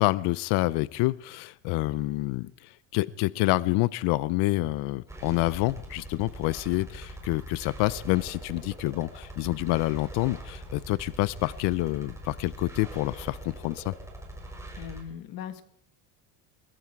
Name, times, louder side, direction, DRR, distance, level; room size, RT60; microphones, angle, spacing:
voice 1, 0.0-13.9, left 20 dB, 70° left, 19 dB, 0.6 m, -27 dB
sound 1, 5.1-15.0, right 1 dB, 5° right, 4.1 m, -42 dB
voice 2, 14.7-15.6, left 9 dB, 55° left, 11 dB, 1.7 m, -39 dB
23.0 x 13.5 x 4.6 m, 0.66 s
cardioid pair, 140°, 43 cm